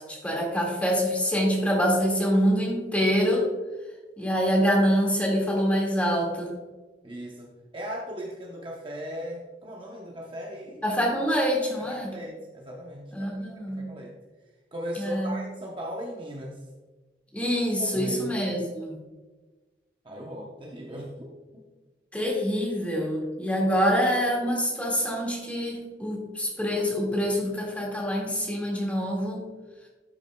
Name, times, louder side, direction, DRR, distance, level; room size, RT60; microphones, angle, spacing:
voice 1, 0.1-3.5 4.2-6.5 10.8-12.1 13.1-13.8 15.0-15.3 17.3-19.0 22.1-29.5, equal, 10° left, -3 dB, 1.9 m, -25 dB
voice 2, 7.0-10.8 11.8-13.3 13.7-14.1 14.7-16.6 17.8-18.2 20.0-21.6, equal, 30° right, -2 dB, 0.8 m, -38 dB
12.0 x 6.0 x 2.3 m, 1.2 s
head